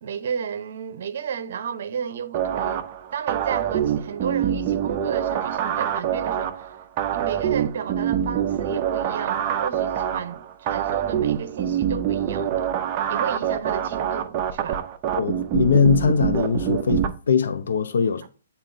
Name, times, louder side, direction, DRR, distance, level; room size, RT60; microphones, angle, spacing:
voice 1, 0.0-2.9 3.1-6.8 7.1-12.8 13.1-14.8 18.2-18.3, right 7 dB, 55° right, 0.8 m, -32 dB
sound 1, 2.3-17.1, right 9 dB, 25° right, 0.6 m, -25 dB
voice 2, 15.2-18.3, left 6 dB, 75° left, 0.6 m, -21 dB
8.9 x 4.2 x 2.6 m
hypercardioid pair, 160°, 0 cm